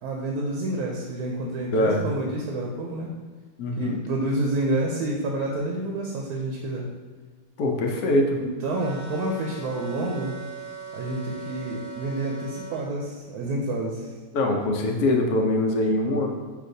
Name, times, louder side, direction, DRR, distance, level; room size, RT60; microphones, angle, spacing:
voice 1, 0.0-3.1 3.8-6.9 8.4-10.4 10.9-14.1, right 2 dB, 85° right, -1 dB, 1.1 m, -29 dB
voice 2, 1.7-2.0 3.6-4.0 7.6-8.4 14.3-16.3, left 1 dB, 85° left, 2 dB, 1.1 m, -23 dB
sound 1, 8.7-12.9, right 4 dB, 50° left, 1.1 m, -40 dB
5.8 x 2.8 x 2.6 m, 1.5 s
omnidirectional pair, 1.6 m